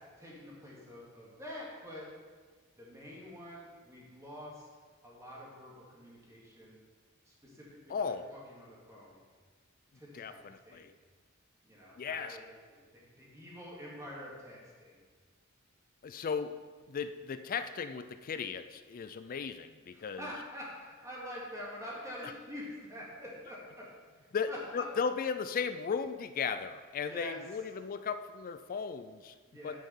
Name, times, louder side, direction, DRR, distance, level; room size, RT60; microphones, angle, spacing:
voice 1, 0.2-2.1 2.8-4.7 5.0-6.8 7.2-9.2 9.9-10.9 11.6-15.0 19.9-24.9 27.0-27.4 29.4-29.8, equal, 15° right, -5 dB, 2.6 m, -46 dB
voice 2, 7.9-8.3 10.1-10.9 12.0-12.4 16.0-16.6 16.9-20.3 24.3-29.3 29.6-29.8, left 6 dB, 40° left, 10 dB, 0.4 m, -36 dB
10.5 x 5.7 x 5.6 m, 1.5 s
head